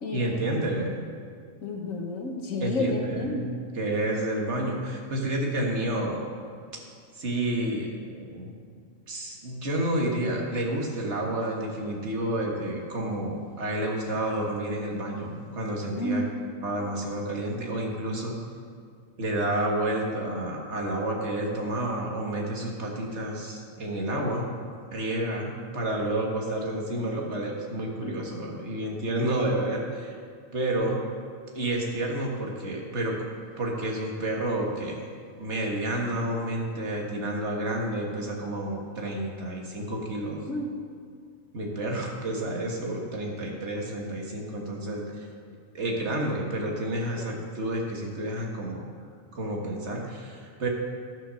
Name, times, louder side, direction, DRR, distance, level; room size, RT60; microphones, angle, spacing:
voice 1, 0.1-1.1 2.6-6.3 7.1-8.5 9.1-16.2 16.6-18.4 19.2-24.4 24.9-30.2 30.5-31.0 31.5-33.2 33.6-35.1 35.4-40.4 41.5-45.3 45.7-48.9 49.3-50.7, right 1 dB, 60° right, 0 dB, 1.8 m, -30 dB
voice 2, 1.6-3.5 16.0-16.2 24.1-24.3 28.0-28.2 40.5-40.8 47.2-47.4, left 2 dB, 80° left, 2 dB, 1.7 m, -31 dB
13.0 x 5.8 x 6.3 m, 2.1 s
omnidirectional pair, 1.4 m